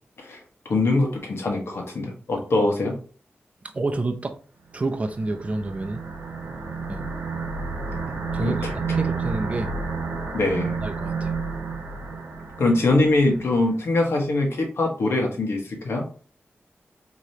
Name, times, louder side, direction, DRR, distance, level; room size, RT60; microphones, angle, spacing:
voice 1, 0.7-3.0 8.4-8.7 10.3-10.8 12.6-16.1, left 2 dB, 75° left, 1 dB, 1.3 m, -23 dB
voice 2, 3.7-4.3 4.7-6.0 6.9-7.0 8.3-8.6 8.9-9.7 10.8-11.3, right 2 dB, 30° right, 5 dB, 0.5 m, -28 dB
sound 1, 4.9-13.6, right 4 dB, 75° right, 0.9 m, -30 dB
4.8 x 3.0 x 2.8 m, 0.40 s
wide cardioid pair, 135°, 4 cm